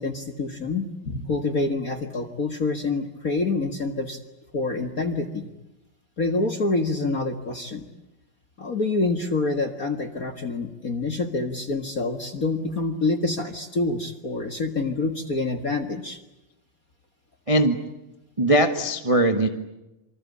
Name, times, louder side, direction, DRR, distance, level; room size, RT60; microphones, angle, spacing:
voice 1, 0.0-4.2 4.5-5.5 6.2-7.8 8.6-16.2, left 3 dB, 40° left, 8 dB, 1.4 m, -27 dB
voice 2, 17.5-17.8 18.4-19.5, right 1 dB, 25° right, 7 dB, 0.7 m, -20 dB
27.5 x 25.5 x 8.6 m, 0.97 s
omnidirectional pair, 3.8 m